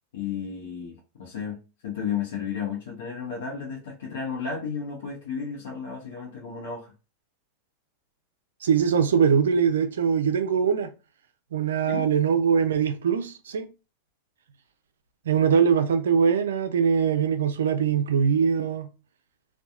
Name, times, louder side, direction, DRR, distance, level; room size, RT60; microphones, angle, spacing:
voice 1, 0.1-1.6 1.8-6.9 11.9-12.0, left 6 dB, 75° left, 0.7 m, -33 dB
voice 2, 8.6-10.9 11.5-13.7 15.3-18.9, right 7 dB, 85° right, 0.4 m, -22 dB
2.8 x 2.2 x 2.3 m
hypercardioid pair, 100°, 0 cm